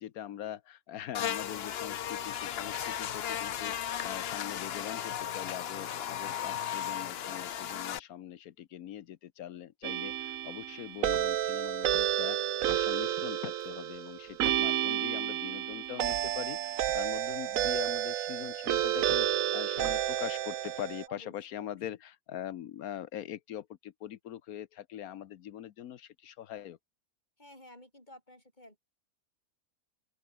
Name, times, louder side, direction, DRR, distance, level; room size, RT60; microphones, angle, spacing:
voice 1, 0.0-26.8, left 11 dB, 85° left, 1.3 m, -42 dB
Buzz, 1.1-8.0, left 10 dB, 55° left, 0.8 m, -35 dB
sound 1, 9.8-21.1, right 11 dB, 70° right, 1.2 m, -31 dB
voice 2, 21.1-21.8 27.4-28.8, left 1 dB, 30° left, 7.6 m, -54 dB
open air
omnidirectional pair, 1.5 m